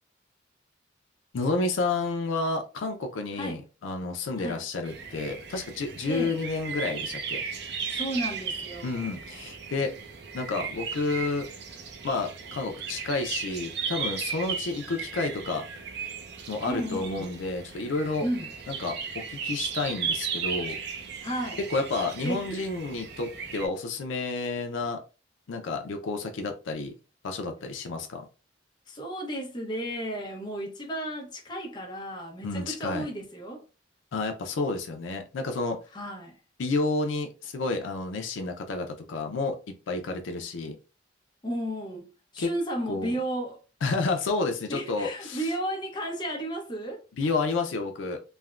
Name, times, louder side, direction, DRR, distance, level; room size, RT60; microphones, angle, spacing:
voice 1, 1.3-7.4 8.8-9.9 10.3-11.5 12.0-15.6 16.5-18.3 18.7-20.8 21.6-25.0 25.5-26.9 27.2-28.2 32.4-33.1 34.1-35.8 36.6-40.8 42.4-42.5 42.9-43.1 43.8-45.4 47.2-48.2, left 3 dB, 80° left, 0.4 m, -30 dB
sound 1, 4.8-23.7, right 6 dB, 60° right, 0.5 m, -36 dB
voice 2, 6.1-6.4 7.9-9.2 16.7-17.3 18.2-18.5 21.2-21.6 22.2-22.6 28.9-33.6 35.9-36.4 41.4-42.1 42.3-43.6 44.7-47.0, right 1 dB, 25° left, 0.7 m, -33 dB
3.2 x 2.1 x 2.4 m
head